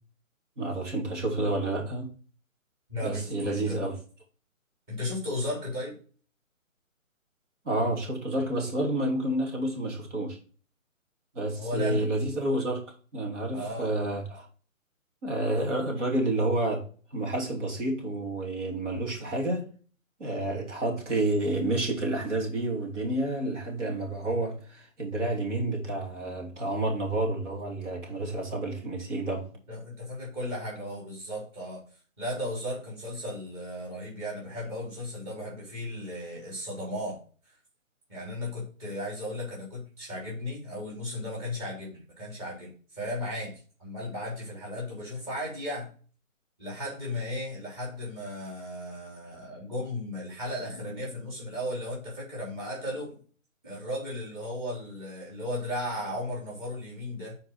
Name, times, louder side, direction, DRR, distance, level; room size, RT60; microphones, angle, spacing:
voice 1, 0.6-2.1 3.0-4.0 7.6-10.4 11.3-12.8 13.1-14.5 15.2-19.6 20.2-29.5, right 1 dB, 60° right, 3.1 m, -29 dB
voice 2, 2.9-3.8 4.9-6.0 11.6-12.0 13.5-13.9 29.7-31.8 32.2-37.2 38.1-43.5 43.8-45.9 46.6-53.2 53.6-57.3, left 1 dB, 20° right, 3.2 m, -35 dB
8.9 x 4.6 x 4.2 m
hypercardioid pair, 165°, 41 cm